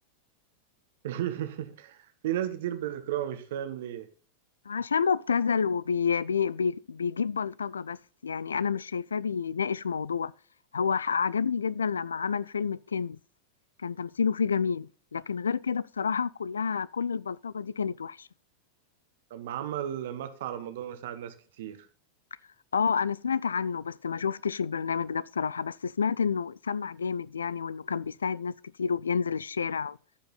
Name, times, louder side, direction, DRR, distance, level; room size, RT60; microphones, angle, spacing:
voice 1, 1.0-4.1 19.3-21.8, right 11 dB, 55° right, 1.2 m, -34 dB
voice 2, 4.7-10.3 10.7-13.2 13.8-18.3 22.7-30.0, left 6 dB, 70° left, 0.3 m, -29 dB
14.0 x 5.3 x 3.9 m
figure-of-eight pair, 90°, 0 cm